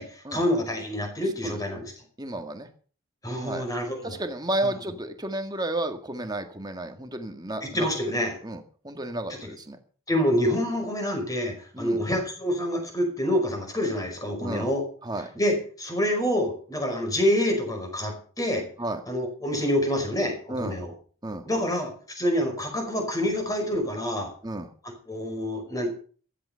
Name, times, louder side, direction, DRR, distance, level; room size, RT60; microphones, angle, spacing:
voice 1, 0.0-1.9 3.2-4.2 4.6-4.7 7.6-8.4 9.4-9.5 10.1-14.8 15.4-18.7 19.1-20.9 21.5-24.3 25.1-25.9, equal, 15° left, 3 dB, 5.3 m, -27 dB
voice 2, 1.4-1.9 2.2-2.7 3.4-3.6 4.0-7.9 8.4-9.8 11.7-12.0 14.4-14.7 15.0-15.3 18.8-19.0 20.5-20.8 21.2-21.5 24.4-24.7, right 1 dB, 20° right, 6 dB, 1.9 m, -32 dB
15.0 x 12.0 x 5.7 m, 0.43 s
head